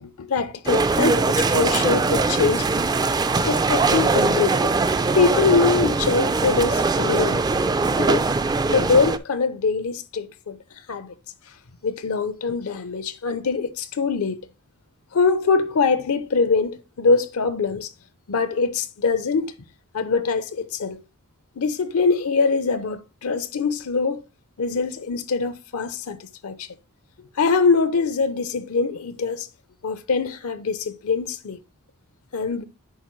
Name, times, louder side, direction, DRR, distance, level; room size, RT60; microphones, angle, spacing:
voice 1, 0.0-2.7 3.4-4.7 5.1-7.5 8.0-8.3 8.7-11.1 11.8-14.4 15.1-17.9 18.3-19.5 19.9-21.0 21.6-24.2 24.6-26.7 27.4-29.5 29.8-31.6 32.3-32.7, left 4 dB, 75° left, 0.6 m, -23 dB
sound 1, 0.7-9.2, right 3 dB, 20° right, 0.3 m, -21 dB
10.5 x 4.1 x 3.1 m
head